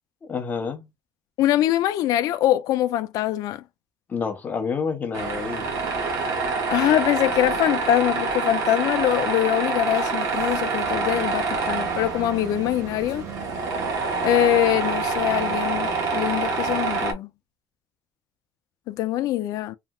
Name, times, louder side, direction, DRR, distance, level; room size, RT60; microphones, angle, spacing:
voice 1, 0.2-0.9 4.1-5.7, left 5 dB, 25° left, 0.6 m, -28 dB
voice 2, 1.4-3.6 6.7-13.3 14.2-17.3 18.9-19.7, left 13 dB, 65° left, 0.4 m, -23 dB
Tools, 5.1-17.1, right 4 dB, 55° right, 0.9 m, -26 dB
3.2 x 2.8 x 2.2 m
cardioid pair, 180°, 7 cm